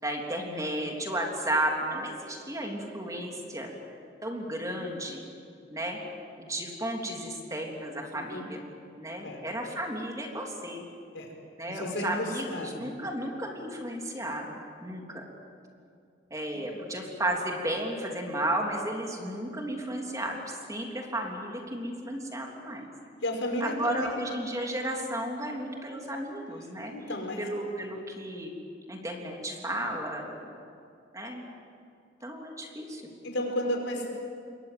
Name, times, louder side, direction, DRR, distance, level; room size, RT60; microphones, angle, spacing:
voice 1, 0.0-3.7 4.2-5.2 5.7-6.0 6.4-8.6 9.0-10.8 11.6-15.3 16.3-22.9 23.6-26.9 27.4-28.5 28.9-30.5 31.1-31.5 32.2-33.0, right 1 dB, 20° right, 1 dB, 3.3 m, -33 dB
voice 2, 11.7-12.8 16.5-16.6 23.2-24.2 26.9-27.4 33.2-34.1, left 1 dB, 85° left, 2 dB, 5.3 m, -32 dB
28.0 x 22.5 x 7.7 m, 2.5 s
head